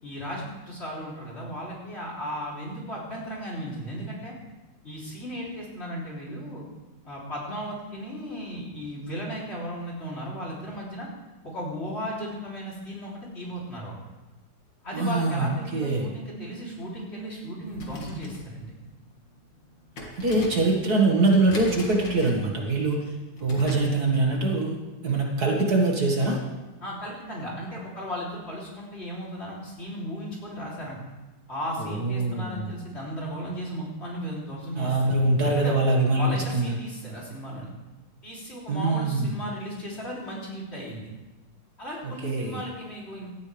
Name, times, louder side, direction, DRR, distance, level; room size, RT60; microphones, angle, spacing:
voice 1, 0.0-4.4 4.8-6.7 7.1-11.1 11.4-13.9 14.8-18.8 26.8-31.0 31.5-35.1 35.6-35.8 36.2-37.7 38.2-41.1 41.8-43.3, equal, 35° left, -5 dB, 3.7 m, -35 dB
voice 2, 14.9-16.1 20.2-23.1 23.4-24.8 25.0-26.4 31.8-32.7 34.8-36.3 36.5-36.7 38.7-39.3 42.0-42.6, right 2 dB, 55° right, 0 dB, 2.4 m, -23 dB
sound 1, 17.6-24.0, left 2 dB, 80° left, 2.8 m, -42 dB
17.5 x 13.5 x 3.4 m, 1.1 s
omnidirectional pair, 2.0 m